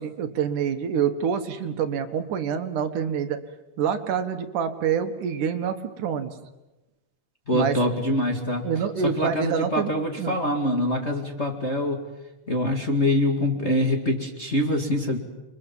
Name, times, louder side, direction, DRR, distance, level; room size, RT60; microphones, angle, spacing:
voice 1, 0.0-3.4 3.8-6.3 7.5-7.8 8.6-9.9 10.2-10.4, right 7 dB, 75° right, 8 dB, 2.9 m, -26 dB
voice 2, 7.5-8.7 9.0-12.0 12.5-15.2, left 1 dB, 25° left, 2 dB, 1.9 m, -24 dB
30.0 x 23.5 x 7.3 m, 1.1 s
omnidirectional pair, 3.7 m